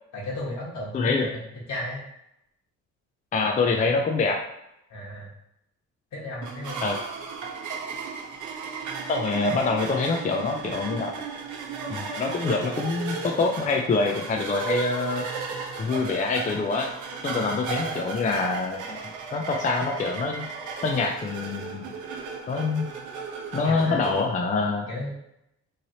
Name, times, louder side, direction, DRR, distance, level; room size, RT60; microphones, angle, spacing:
voice 1, 0.1-1.3 1.7-2.0 4.9-5.3 6.1-6.8 17.7-17.9 23.6-24.0 24.9-25.1, left 1 dB, 65° left, -4 dB, 1.3 m, -34 dB
voice 2, 0.9-1.3 3.3-4.4 6.8-7.0 9.1-11.1 11.9-15.2 15.8-16.9 17.2-19.0 19.3-20.4 20.8-21.9 22.5-22.9 23.5-24.9, left 4 dB, 25° left, 2 dB, 0.4 m, -25 dB
sound 1, 6.4-24.2, right 5 dB, 80° right, 0.7 m, -35 dB
3.1 x 2.7 x 2.7 m, 0.81 s
cardioid pair, 90°, 30 cm